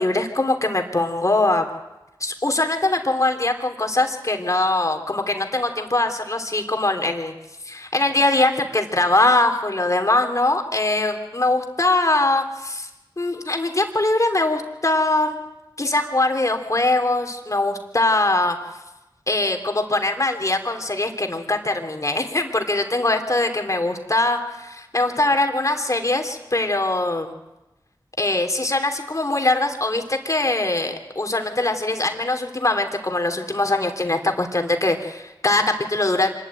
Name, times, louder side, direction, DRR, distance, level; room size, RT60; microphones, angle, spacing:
voice 1, 0.0-1.6 2.2-7.3 7.6-12.9 13.2-15.4 15.8-18.6 19.3-27.3 28.2-36.3, left 2 dB, 40° left, 5 dB, 3.0 m, -22 dB
26.0 x 12.0 x 9.1 m, 1.0 s
cardioid pair, 40°, 8 cm